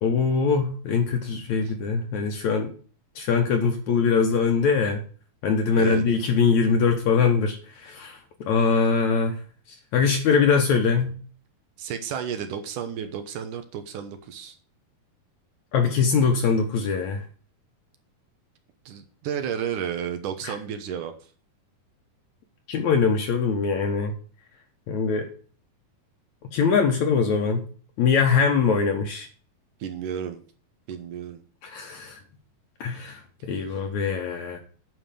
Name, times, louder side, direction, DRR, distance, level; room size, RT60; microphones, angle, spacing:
voice 1, 0.0-2.7 3.2-5.0 5.4-9.4 9.9-11.1 15.7-17.2 20.4-20.5 22.7-24.2 24.9-25.3 26.5-27.6 28.0-29.3 31.6-32.2 32.8-34.6, left 5 dB, 65° left, 3 dB, 2.2 m, -22 dB
voice 2, 11.8-14.6 18.9-21.1 29.8-30.4 30.9-31.4, right 8 dB, 70° right, 8 dB, 2.5 m, -32 dB
9.3 x 5.8 x 6.7 m, 0.42 s
omnidirectional pair, 4.0 m